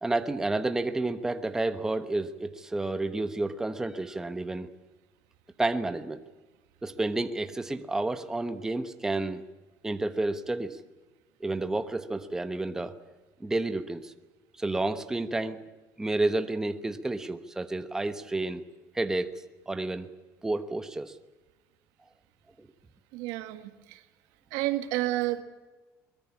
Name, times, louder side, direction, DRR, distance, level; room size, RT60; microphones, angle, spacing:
voice 1, 0.0-4.7 5.6-6.2 6.8-9.4 9.8-10.8 11.4-13.0 13.4-14.1 14.6-15.6 16.0-18.6 18.9-20.1 20.4-21.2 22.6-22.7, right 2 dB, 10° right, 9 dB, 1.1 m, -30 dB
voice 2, 23.1-24.0 24.5-25.4, right 16 dB, 85° right, 9 dB, 1.9 m, -30 dB
24.0 x 21.5 x 8.5 m, 1.2 s
cardioid pair, 150°, 6 cm